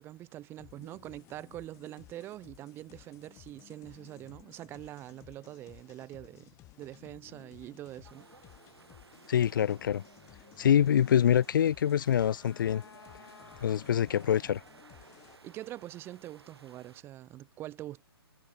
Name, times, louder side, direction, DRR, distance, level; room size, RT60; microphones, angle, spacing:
voice 1, 0.0-6.5 6.8-8.3 15.4-18.0, right 14 dB, 15° right, 0.7 m, -44 dB
sound 1, 0.6-15.4, left 18 dB, 25° left, 3.1 m, -57 dB
sound 2, 8.0-17.0, right 4 dB, 80° right, 3.6 m, -57 dB
voice 2, 9.3-10.0 10.6-12.8 13.6-14.6, left 9 dB, 55° left, 0.5 m, -25 dB
sound 3, 11.7-14.1, left 5 dB, 75° left, 5.3 m, -55 dB
figure-of-eight pair, 135°, 13 cm